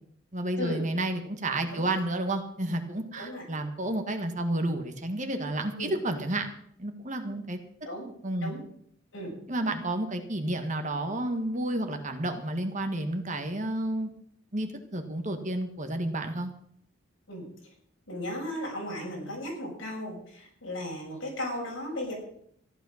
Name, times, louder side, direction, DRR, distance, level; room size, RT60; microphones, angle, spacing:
voice 1, 0.3-6.5 6.8-7.6 8.0-8.5 9.5-14.1 14.5-16.5, right 1 dB, 35° right, 6 dB, 1.6 m, -31 dB
voice 2, 18.1-22.1, left 1 dB, 70° left, -2 dB, 7.0 m, -35 dB
14.5 x 11.5 x 6.5 m, 0.67 s
head